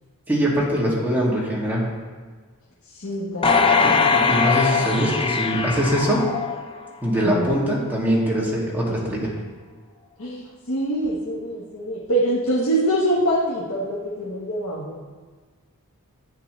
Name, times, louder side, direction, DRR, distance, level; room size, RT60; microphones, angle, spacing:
voice 1, 0.3-1.9 3.8-6.2 7.0-9.3, equal, 10° right, -6 dB, 2.3 m, -22 dB
voice 2, 2.9-4.2 7.2-7.6 10.2-15.0, right 1 dB, 70° left, -7 dB, 1.4 m, -25 dB
sound 1, 3.4-6.9 7.4-7.5, left 5 dB, 25° left, 0.6 m, -21 dB
11.5 x 8.8 x 3.3 m, 1.5 s
head